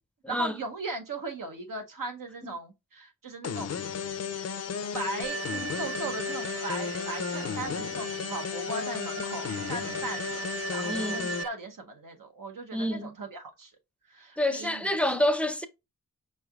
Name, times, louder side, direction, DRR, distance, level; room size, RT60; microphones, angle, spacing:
voice 1, 0.3-3.8 4.9-10.4 10.7-13.7 14.1-14.9, right 2 dB, 80° right, 1.0 m, -38 dB
sound 1, 3.4-11.4, left 7 dB, 55° left, 0.4 m, -34 dB
Alarm, 5.2-11.5, right 6 dB, 45° right, 0.5 m, -38 dB
voice 2, 10.9-11.3 12.7-13.1 14.4-15.7, left 1 dB, 5° left, 0.5 m, -28 dB
5.4 x 3.2 x 2.4 m
wide cardioid pair, 80°, 32 cm